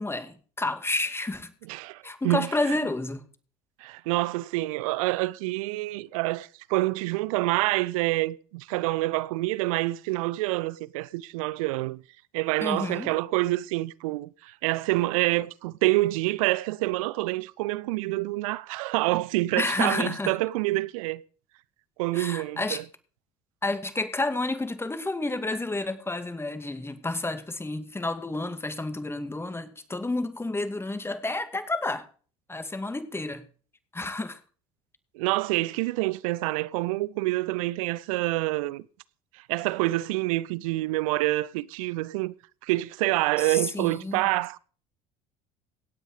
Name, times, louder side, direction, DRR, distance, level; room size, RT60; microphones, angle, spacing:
voice 1, 0.0-1.5 2.0-3.2 12.6-13.1 19.6-20.4 22.1-22.8 23.6-32.1 32.5-33.4 33.9-34.4 43.4-44.3, left 2 dB, 15° left, 2.3 m, -30 dB
voice 2, 1.7-2.5 3.8-12.0 12.3-21.2 22.0-22.8 35.1-38.8 39.3-42.3 42.6-44.6, right 19 dB, 80° right, 0.6 m, -27 dB
17.5 x 9.1 x 4.9 m
hypercardioid pair, 75°, 17 cm